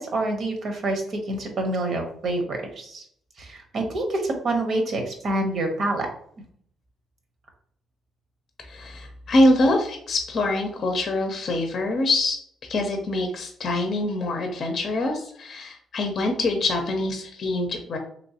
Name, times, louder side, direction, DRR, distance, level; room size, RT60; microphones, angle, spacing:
voice 1, 0.0-3.0 3.4-6.1, right 2 dB, 60° right, 3 dB, 0.9 m, -27 dB
voice 2, 8.7-12.4 12.7-18.0, left 1 dB, 50° left, 4 dB, 0.6 m, -24 dB
3.0 x 3.0 x 2.8 m, 0.63 s
cardioid pair, 90°, 0 cm